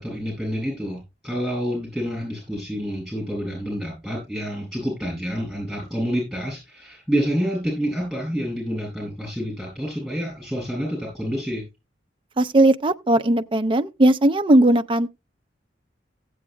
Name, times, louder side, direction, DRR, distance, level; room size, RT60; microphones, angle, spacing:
voice 1, 0.0-11.6, equal, ahead, 7.8 m, -28 dB
voice 2, 12.4-15.1, right 1 dB, 30° right, 0.5 m, -18 dB
16.5 x 8.6 x 2.2 m
head